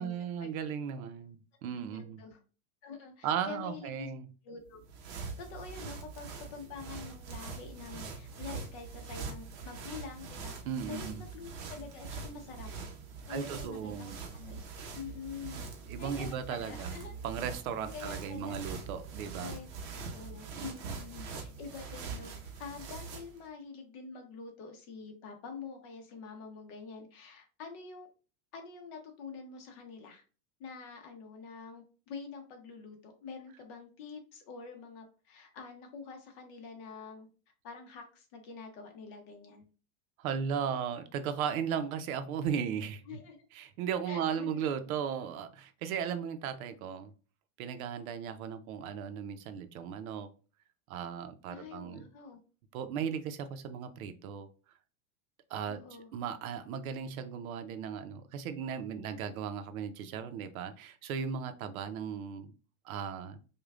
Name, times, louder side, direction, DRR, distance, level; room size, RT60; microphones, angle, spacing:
voice 1, 0.0-2.2 3.2-4.3 10.6-11.2 13.3-14.2 15.9-17.0 17.2-19.5 20.5-21.0 40.2-43.0 43.5-47.1 47.6-50.3 50.9-52.1 52.7-54.5 55.5-55.8 56.1-62.5 62.8-63.4, right 7 dB, 75° right, 9 dB, 0.7 m, -36 dB
voice 2, 1.9-2.4 2.8-4.1 4.4-4.8 5.4-10.6 10.9-12.7 13.3-14.6 14.9-15.7 16.0-17.2 17.9-18.6 19.4-19.7 19.9-22.3 22.6-28.1 28.5-30.2 30.6-37.3 37.6-39.6 43.1-43.5 44.1-44.6 51.5-52.4 55.7-56.1, left 5 dB, 45° left, 4 dB, 1.0 m, -46 dB
sound 1, 4.7-23.4, right 4 dB, 35° right, 0.7 m, -43 dB
5.0 x 2.3 x 2.4 m, 0.36 s
supercardioid pair, 160°, 43 cm